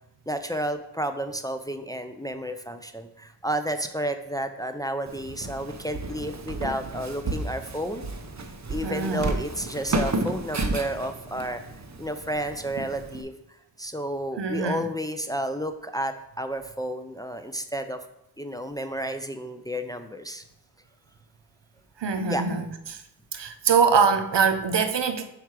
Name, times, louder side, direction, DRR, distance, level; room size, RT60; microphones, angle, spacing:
voice 1, 0.3-8.0 8.7-11.6 12.0-13.3 13.8-18.0 18.4-20.4 22.2-22.5, right 1 dB, 10° left, 7 dB, 0.4 m, -31 dB
Walk footsteps, 5.1-13.2, right 2 dB, 40° right, 0.7 m, -32 dB
voice 2, 8.8-9.3 14.4-14.9 22.0-23.0 23.3-25.2, right 5 dB, 80° right, 8 dB, 0.7 m, -23 dB
5.9 x 4.7 x 4.7 m, 0.80 s
wide cardioid pair, 80°, 42 cm